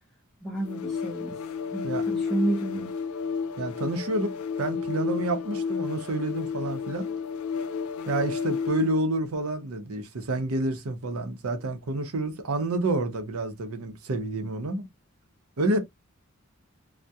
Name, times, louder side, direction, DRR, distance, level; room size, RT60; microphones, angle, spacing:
voice 1, 0.4-1.4 1.7-2.9, right 2 dB, ahead, 0.5 m, -30 dB
sound 1, 0.6-9.0, left 6 dB, 75° left, 0.4 m, -32 dB
voice 2, 3.6-7.1 8.1-14.9 15.6-15.8, right 2 dB, 75° right, 0.6 m, -29 dB
2.2 x 2.1 x 2.7 m
head